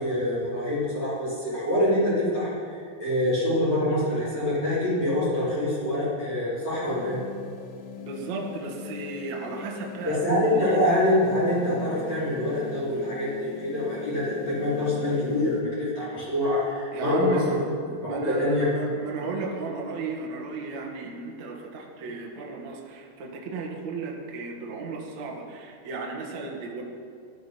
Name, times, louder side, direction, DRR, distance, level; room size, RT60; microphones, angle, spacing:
voice 1, 0.0-7.2 10.0-17.6 17.9-18.7, left 1 dB, 35° left, -9 dB, 5.0 m, -25 dB
sound 1, 6.9-15.6, left 7 dB, 75° left, 3.4 m, -41 dB
voice 2, 8.0-10.8 16.9-17.7 18.0-26.8, right 4 dB, 55° right, -1 dB, 2.1 m, -34 dB
18.5 x 13.0 x 5.5 m, 2.3 s
omnidirectional pair, 5.8 m